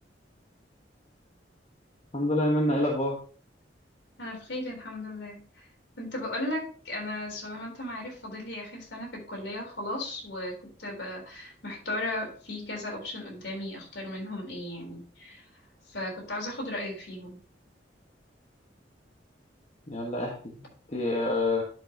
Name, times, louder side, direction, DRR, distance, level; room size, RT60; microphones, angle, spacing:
voice 1, 2.1-3.2 19.9-20.4 20.9-21.6, left 1 dB, 40° left, -2 dB, 1.4 m, -26 dB
voice 2, 4.2-5.7 6.0-15.4 15.9-17.4, left 1 dB, 70° left, -1 dB, 3.9 m, -36 dB
11.0 x 5.6 x 2.9 m, 0.41 s
head